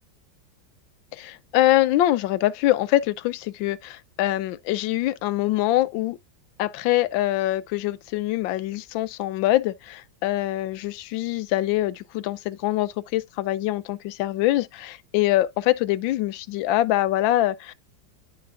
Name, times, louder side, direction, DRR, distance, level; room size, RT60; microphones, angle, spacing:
voice 1, 1.1-6.2 6.6-17.7, left 15 dB, 85° left, 1.3 m, -24 dB
11.0 x 5.0 x 2.4 m
omnidirectional pair, 2.0 m